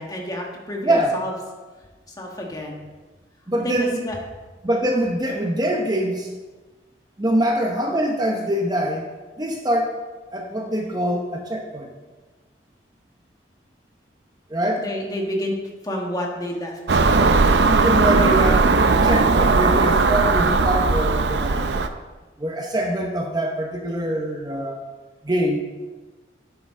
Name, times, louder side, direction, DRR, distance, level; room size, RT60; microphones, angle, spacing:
voice 1, 0.0-1.3 2.2-2.8 3.6-4.2 14.8-15.5 15.8-17.0 19.3-19.6, equal, 20° left, 0 dB, 1.5 m, -30 dB
voice 2, 0.8-1.2 3.5-4.0 4.6-6.3 7.2-9.1 9.4-10.0 10.3-11.9 14.5-14.9 17.7-21.8 22.4-24.8 25.2-25.6, equal, 20° right, 1 dB, 0.8 m, -24 dB
Car passing by / Engine, 16.9-21.9, right 3 dB, 75° right, 0.6 m, -18 dB
10.5 x 8.8 x 3.7 m, 1.3 s
head